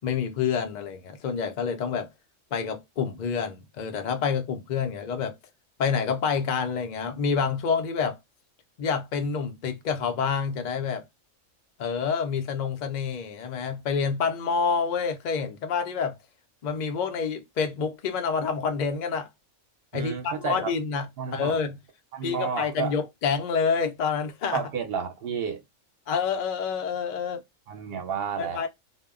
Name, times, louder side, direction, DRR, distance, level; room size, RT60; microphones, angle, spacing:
voice 1, 0.0-2.1 2.5-5.4 5.8-8.2 8.8-11.0 11.8-16.2 16.6-19.3 19.9-21.1 21.3-21.8 22.2-24.6 26.1-27.4 28.4-28.7, left 6 dB, 65° left, 0.4 m, -28 dB
voice 2, 19.9-20.7 21.2-21.6 22.1-22.9 24.5-25.6 27.7-28.6, right 6 dB, 60° right, 0.8 m, -31 dB
2.1 x 2.1 x 3.5 m
omnidirectional pair, 1.4 m